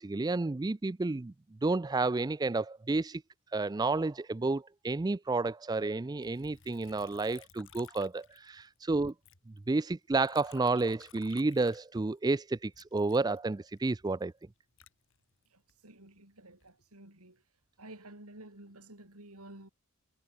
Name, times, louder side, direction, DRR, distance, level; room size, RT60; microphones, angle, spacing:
voice 1, 0.0-1.3 1.6-3.2 3.5-9.1 9.7-14.3, right 3 dB, 20° right, 0.4 m, -31 dB
Liquid, 6.2-8.8 9.1-12.3 12.7-15.8 16.3-16.9, left 7 dB, 60° left, 4.3 m, -58 dB
voice 2, 15.5-17.4 17.8-19.7, right 1 dB, 85° right, 6.6 m, -52 dB
head